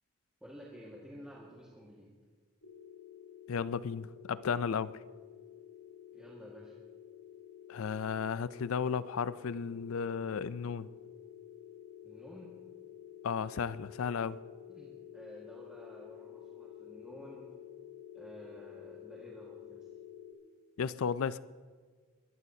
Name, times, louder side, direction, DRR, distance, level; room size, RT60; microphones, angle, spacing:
voice 1, 0.4-2.1 6.1-6.7 12.0-12.5 14.7-17.5 18.1-19.8, equal, 5° right, 1.7 m, -51 dB
sound 1, 2.6-20.3, left 10 dB, 65° left, 1.0 m, -51 dB
voice 2, 3.5-5.0 7.7-10.9 13.2-14.4 20.8-21.4, left 6 dB, 80° left, 0.4 m, -34 dB
21.5 x 14.5 x 2.8 m
head